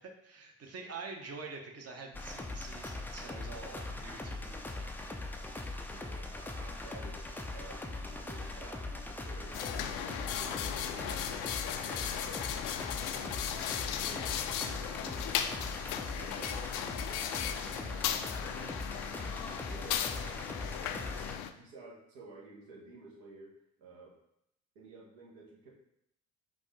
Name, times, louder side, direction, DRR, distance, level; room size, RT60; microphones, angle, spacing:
voice 1, 0.0-4.6 16.2-17.0, right 4 dB, 35° right, 3 dB, 1.0 m, -46 dB
sound 1, 2.1-21.4, left 2 dB, 5° left, 0.4 m, -41 dB
voice 2, 5.8-12.6 13.1-15.8 17.8-18.1 18.4-19.1 19.6-20.5 21.4-23.5 23.8-24.1 24.7-25.7, right 3 dB, 70° right, -3 dB, 1.3 m, -53 dB
sound 2, 9.5-21.5, left 10 dB, 60° left, 0.5 m, -37 dB
5.2 x 2.5 x 3.2 m, 0.78 s
figure-of-eight pair, 50°, 43 cm